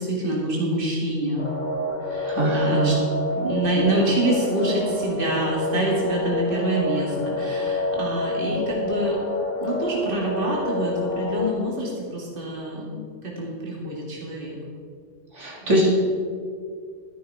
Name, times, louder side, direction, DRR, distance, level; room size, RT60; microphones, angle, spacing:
voice 1, 0.0-1.5 2.0-3.0 3.3-9.2 9.6-14.6 15.6-15.9, right 1 dB, 45° right, -3 dB, 2.3 m, -26 dB
sound 1, 1.4-11.5, left 2 dB, 40° left, 1.5 m, -28 dB
voice 2, 2.2-3.0 15.4-15.9, right 1 dB, 75° right, -3 dB, 2.8 m, -22 dB
12.5 x 11.0 x 4.7 m, 2.2 s
omnidirectional pair, 1.3 m